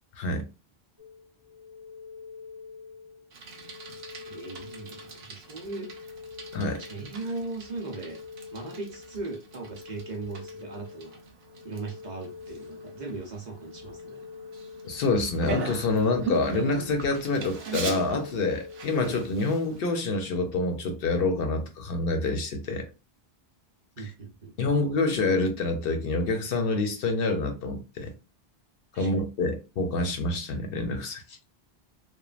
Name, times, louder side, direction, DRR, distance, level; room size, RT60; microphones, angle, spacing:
sound 1, 1.0-19.8, left 5 dB, 20° right, 0.9 m, -46 dB
Bicycle, 3.3-19.8, right 4 dB, 75° right, 0.9 m, -41 dB
voice 1, 4.3-6.1 6.8-8.2 8.5-11.2 11.6-14.2 24.0-24.7 28.9-29.1, right 3 dB, 50° right, 0.7 m, -38 dB
voice 2, 14.8-22.8 24.0-24.1 24.6-28.1 29.0-31.4, left 3 dB, 65° left, 0.8 m, -27 dB
3.0 x 2.2 x 2.4 m
omnidirectional pair, 1.1 m